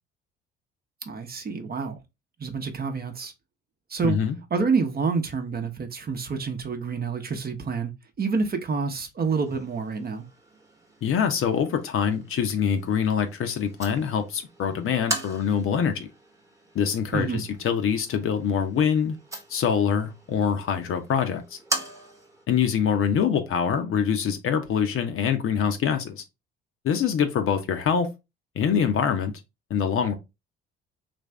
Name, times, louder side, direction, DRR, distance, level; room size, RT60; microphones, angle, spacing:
voice 1, 1.0-2.0 2.4-3.3 3.9-4.2 4.5-7.9 8.2-10.3 17.1-17.4, right 4 dB, 30° right, 0.8 m, -28 dB
voice 2, 4.0-4.4 11.0-16.1 16.7-19.2 19.5-21.6 22.5-26.2 26.8-28.1 28.6-29.3 29.7-30.2, left 7 dB, 45° left, 0.7 m, -24 dB
sound 1, 9.4-22.5, right 1 dB, 10° right, 1.1 m, -39 dB
3.2 x 2.5 x 3.3 m
figure-of-eight pair, 50°, 30 cm